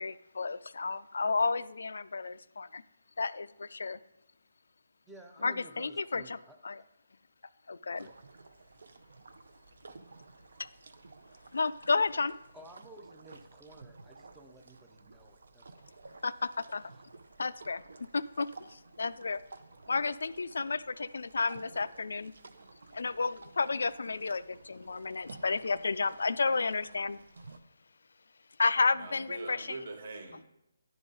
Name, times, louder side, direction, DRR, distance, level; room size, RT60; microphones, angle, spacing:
voice 1, 0.0-2.8 3.2-4.0 5.4-6.4 6.6-6.8 7.7-8.1 10.6-10.7 11.5-12.4 16.2-16.8 17.4-17.8 18.1-19.4 19.9-22.3 22.9-27.2 28.6-29.8, left 4 dB, 75° left, 16 dB, 0.3 m, -32 dB
voice 2, 5.0-6.6 8.0-8.1 12.5-16.0 16.9-17.0, right 2 dB, 5° right, 3 dB, 0.4 m, -54 dB
sound 1, 7.9-27.6, right 3 dB, 70° right, 0.6 m, -54 dB
voice 3, 28.9-30.4, right 3 dB, 50° right, 4 dB, 1.3 m, -43 dB
10.5 x 4.0 x 3.7 m, 0.85 s
hypercardioid pair, 170°, 0 cm